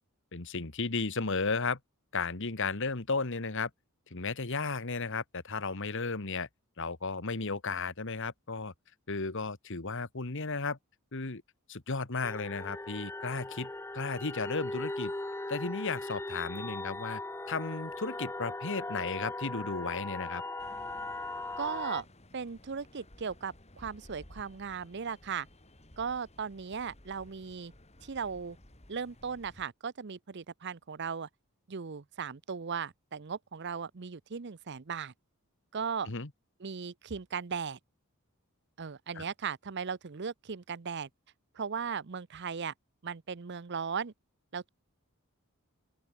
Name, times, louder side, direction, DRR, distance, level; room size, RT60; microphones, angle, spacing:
voice 1, 0.3-1.8 2.1-3.7 4.1-6.5 6.8-8.7 9.1-10.8 11.1-11.4 11.7-15.1 15.5-17.2 17.5-20.4 36.1-36.3 39.2-39.3, left 4 dB, 55° left, 1.6 m, -34 dB
sound 1, 12.2-22.0, left 2 dB, 10° left, 0.6 m, -39 dB
sound 2, 20.6-29.7, left 1 dB, 30° left, 4.3 m, -56 dB
voice 2, 21.6-22.0 22.3-25.5 26.0-27.7 28.0-28.6 28.9-31.3 31.7-35.1 35.7-36.1 36.6-37.8 38.8-41.1 41.5-42.7 43.0-44.1 44.5-44.7, right 6 dB, 50° right, 0.7 m, -37 dB
open air
head